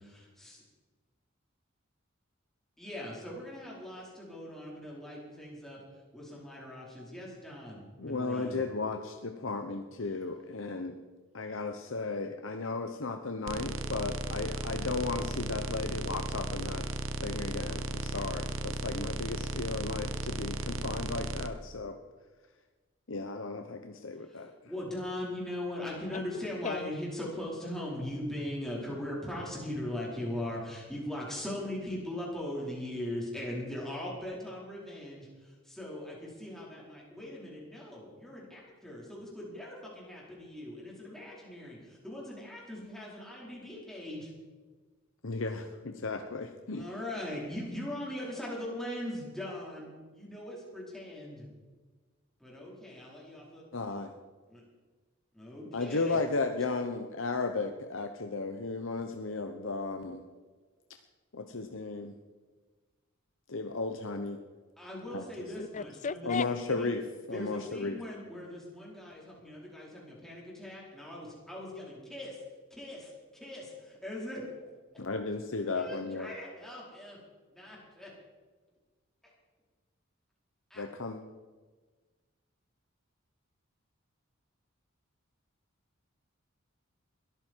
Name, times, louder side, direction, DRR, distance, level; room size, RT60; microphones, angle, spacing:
voice 1, 0.0-0.6 2.8-5.8 6.1-8.6 24.2-44.3 45.5-45.6 46.7-51.5 52.4-53.6 54.5-54.6 55.3-56.2 64.8-66.9 67.3-72.4 72.7-74.7 75.7-77.2 77.5-78.1 80.7-80.8, left 1 dB, ahead, -5 dB, 4.8 m, -40 dB
voice 2, 8.0-11.0 11.3-16.8 17.2-22.0 23.1-24.5 45.2-46.8 53.7-54.1 55.7-60.2 61.3-62.2 63.5-64.4 65.1-65.2 66.2-67.0 67.3-68.0 75.0-76.3 80.8-81.2, left 3 dB, 70° left, 5 dB, 1.0 m, -35 dB
sound 1, 13.5-21.5, right 2 dB, 70° right, 1.1 m, -35 dB
voice 3, 26.3-26.9 65.6-66.5, left 5 dB, 35° left, 18 dB, 0.4 m, -35 dB
21.5 x 13.5 x 4.7 m, 1.4 s
head